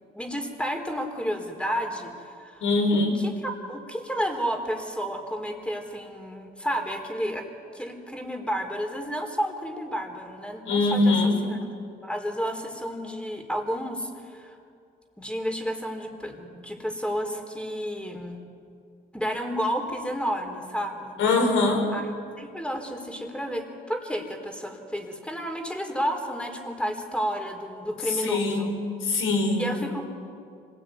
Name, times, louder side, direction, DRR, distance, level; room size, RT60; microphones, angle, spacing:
voice 1, 0.0-2.7 3.1-7.5 7.7-11.6 12.0-14.6 15.2-18.4 19.1-21.2 21.9-22.0 22.4-28.7 29.6-30.3, equal, 5° left, 5 dB, 4.1 m, -31 dB
voice 2, 2.6-3.2 10.7-11.4 21.2-21.8 28.1-29.8, left 3 dB, 85° left, 4 dB, 5.3 m, -23 dB
26.0 x 19.5 x 9.6 m, 2.4 s
cardioid pair, 90°, 20 cm